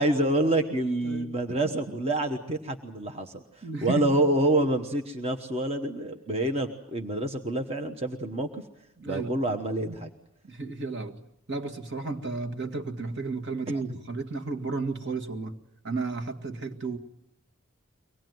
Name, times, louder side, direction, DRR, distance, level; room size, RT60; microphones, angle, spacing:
voice 1, 0.0-8.6 9.1-10.1 13.9-14.0, right 1 dB, 30° right, 4 dB, 1.1 m, -27 dB
voice 2, 1.0-2.0 3.6-4.3 9.0-9.4 9.8-10.0 10.4-11.2 11.5-15.6 15.8-17.0, right 3 dB, 55° right, 6 dB, 1.9 m, -33 dB
24.0 x 19.0 x 9.4 m, 0.82 s
head